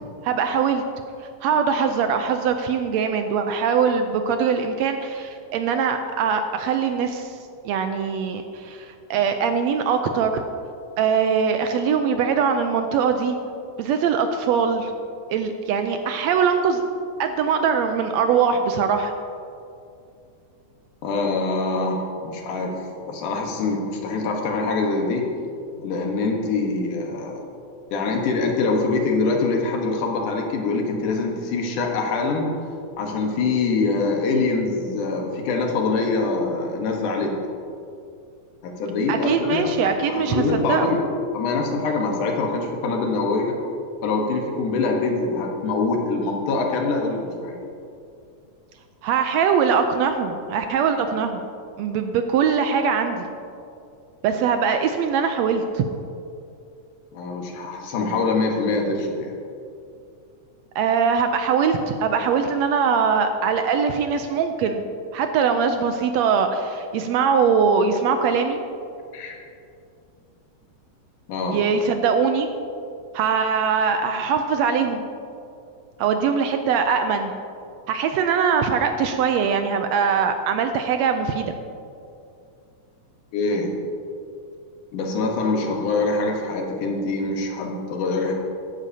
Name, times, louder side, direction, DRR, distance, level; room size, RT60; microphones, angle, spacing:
voice 1, 0.2-0.8 1.4-7.3 7.6-10.4 11.0-13.4 13.8-14.9 15.3-16.8 17.2-19.1 39.1-40.9 49.0-51.4 51.8-53.3 54.2-55.8 60.7-64.8 65.1-68.6 71.5-72.5 73.1-75.0 76.0-77.3 77.9-81.5, right 6 dB, 80° right, 6 dB, 1.6 m, -22 dB
voice 2, 21.0-22.7 23.1-25.2 25.8-27.4 27.9-32.5 33.0-37.3 38.6-41.0 41.3-43.5 44.0-47.6 57.1-59.3 69.1-69.4 71.3-71.6 83.3-83.7 84.9-88.3, left 3 dB, 85° left, 1 dB, 2.8 m, -24 dB
14.5 x 11.5 x 2.8 m, 2.5 s
omnidirectional pair, 3.5 m